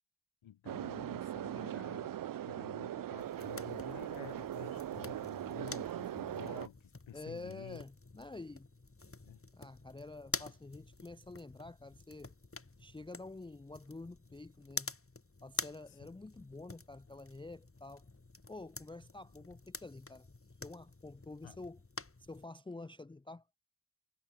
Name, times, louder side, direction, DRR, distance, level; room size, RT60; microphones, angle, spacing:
voice 1, 0.4-2.2 2.4-7.8 9.3-9.4 15.9-16.0 21.4-21.6, left 11 dB, 70° left, 0.9 m, -51 dB
sound 1, 0.7-6.7, right 11 dB, 45° right, 0.4 m, -40 dB
sound 2, 3.2-22.5, left 3 dB, 25° left, 2.7 m, -48 dB
voice 2, 7.1-8.7 9.5-12.3 12.8-15.0 15.4-18.0 18.5-20.3 20.6-21.8 22.3-23.4, left 2 dB, 10° left, 0.5 m, -48 dB
cardioid pair, 45°, 48 cm